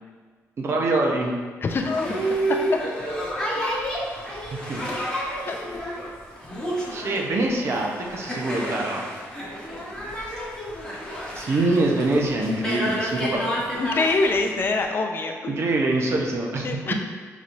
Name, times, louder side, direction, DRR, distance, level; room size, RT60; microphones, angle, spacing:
voice 1, 0.6-1.4 2.1-2.2 4.7-4.8 6.9-9.1 11.3-13.5 15.5-16.7, right 2 dB, 50° right, 0 dB, 0.7 m, -24 dB
voice 2, 1.6-2.2 5.5-5.6 13.8-15.5 16.6-16.9, left 3 dB, 40° left, 4 dB, 0.5 m, -24 dB
Boat Water vehicle, 1.7-14.8, equal, 15° left, 1.0 m, -30 dB
5.3 x 3.1 x 2.6 m, 1.5 s
cardioid pair, 100°, 6 cm